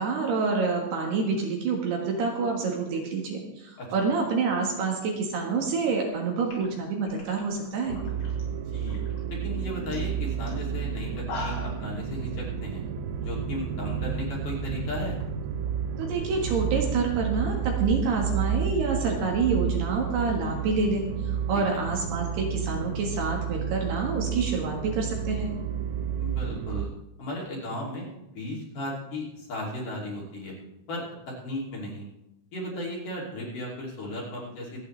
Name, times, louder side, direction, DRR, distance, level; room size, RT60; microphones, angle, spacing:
voice 1, 0.0-8.0 16.0-21.0 21.5-25.5, right 4 dB, 65° right, 0 dB, 3.3 m, -27 dB
sound 1, 6.0-6.1 6.4-8.4 8.7-9.2 9.6-9.7 9.9-10.1 10.5-10.6 11.0-11.8, left 2 dB, 70° left, 6.2 m, -39 dB
sound 2, 7.9-26.9, right 8 dB, 85° right, 3.2 m, -31 dB
voice 2, 8.5-9.0 9.3-12.8 13.2-15.2 26.2-26.9 27.2-28.1 28.3-30.5 30.9-32.1 32.5-34.9, left 1 dB, 45° left, -4 dB, 3.9 m, -35 dB
sound 3, 9.3-21.7 22.0-22.1 22.3-22.6, left 1 dB, 50° right, 4.2 m, -42 dB
26.5 x 8.8 x 3.3 m, 0.90 s
omnidirectional pair, 5.5 m